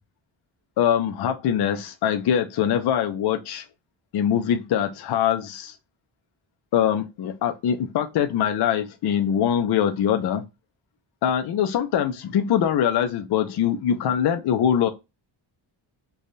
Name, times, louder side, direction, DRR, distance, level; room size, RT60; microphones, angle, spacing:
voice 1, 0.8-3.6 4.1-5.7 6.7-10.4 11.2-14.9, left 9 dB, 55° left, 0.5 m, -23 dB
3.3 x 2.2 x 3.9 m
wide cardioid pair, 150°, 49 cm